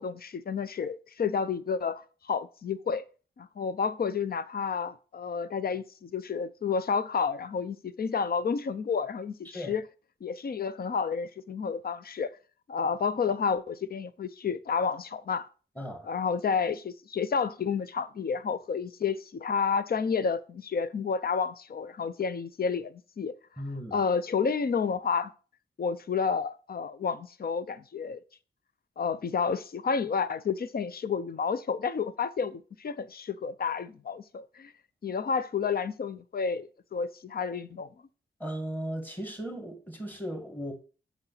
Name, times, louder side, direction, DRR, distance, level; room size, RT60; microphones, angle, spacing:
voice 1, 0.0-3.0 3.4-9.8 10.2-12.3 12.7-15.5 16.0-23.3 23.9-25.3 25.8-28.2 29.0-34.7 35.0-37.9, left 5 dB, 50° left, 0.6 m, -30 dB
voice 2, 15.8-16.1 23.6-24.0 38.4-40.7, equal, 10° left, 1.9 m, -36 dB
8.6 x 5.9 x 4.0 m
wide cardioid pair, 145°, 21 cm